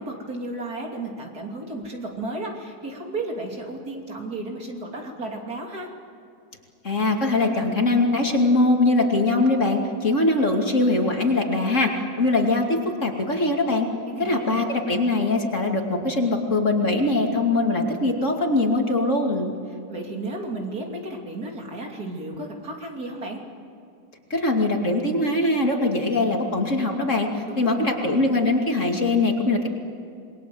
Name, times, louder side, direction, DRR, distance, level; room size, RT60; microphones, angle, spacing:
voice 1, 0.0-5.9 14.1-14.6 19.7-23.4 27.4-28.1, right 2 dB, 55° right, 1 dB, 3.4 m, -33 dB
voice 2, 6.8-11.9 12.2-13.9 14.2-19.5 24.3-29.7, left 2 dB, 40° left, 2 dB, 2.8 m, -22 dB
28.0 x 21.5 x 7.9 m, 2.5 s
omnidirectional pair, 2.0 m